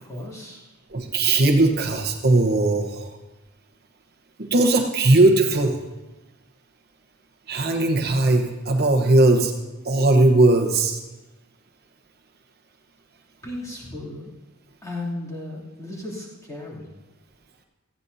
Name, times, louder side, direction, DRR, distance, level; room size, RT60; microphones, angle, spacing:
voice 1, 0.0-0.7 13.4-14.3 14.8-16.9, left 1 dB, 15° left, -6 dB, 2.9 m, -35 dB
voice 2, 0.9-3.1 4.4-5.8 7.5-9.5 9.8-11.0, right 2 dB, 50° right, 2 dB, 1.0 m, -18 dB
18.0 x 15.0 x 2.7 m, 1.1 s
head